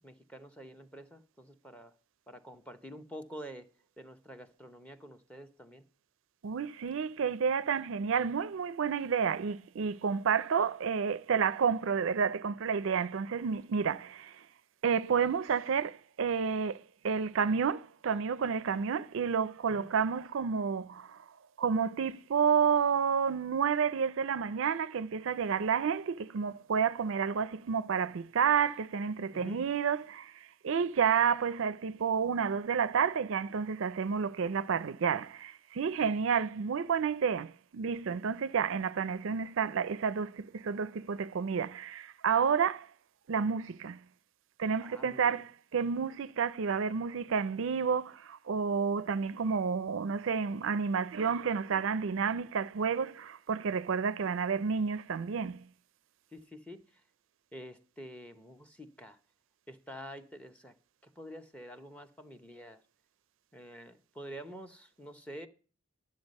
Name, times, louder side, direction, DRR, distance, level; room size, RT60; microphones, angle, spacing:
voice 1, 0.0-1.9 2.3-3.7 4.0-5.8 19.7-19.9 29.3-29.6 44.8-45.4 56.3-57.0 57.5-59.2 59.7-60.7 61.0-62.8 63.5-65.5, equal, 5° left, 0.8 m, -48 dB
voice 2, 6.4-14.4 14.8-21.2 21.6-42.9 43.3-44.0 44.6-55.6, right 6 dB, 65° right, 0.4 m, -30 dB
12.5 x 7.5 x 5.3 m
head